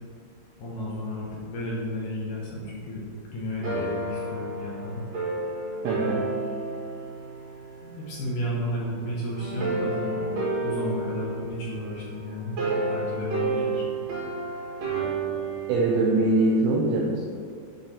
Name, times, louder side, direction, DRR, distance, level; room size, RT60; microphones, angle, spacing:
voice 1, 0.6-5.0 7.8-12.6 12.9-13.9, equal, 65° left, -5 dB, 2.1 m, -33 dB
sound 1, 3.6-8.2 9.4-16.5, right 3 dB, 50° right, 2.2 m, -31 dB
voice 2, 5.8-6.2 15.7-17.2, right 2 dB, 90° right, -1 dB, 2.1 m, -22 dB
11.0 x 4.8 x 4.4 m, 2.1 s
omnidirectional pair, 5.3 m